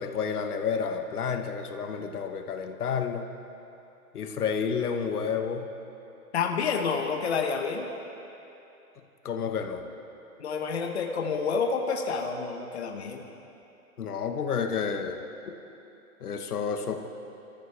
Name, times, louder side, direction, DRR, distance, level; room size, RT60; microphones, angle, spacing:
voice 1, 0.0-3.3 4.1-5.7 9.2-9.8 14.0-15.2 16.2-17.1, left 6 dB, 85° left, 5 dB, 1.4 m, -30 dB
voice 2, 6.3-7.9 10.4-13.3, left 5 dB, 45° left, 3 dB, 1.1 m, -29 dB
26.5 x 14.0 x 3.4 m, 2.9 s
hypercardioid pair, 180°, 44 cm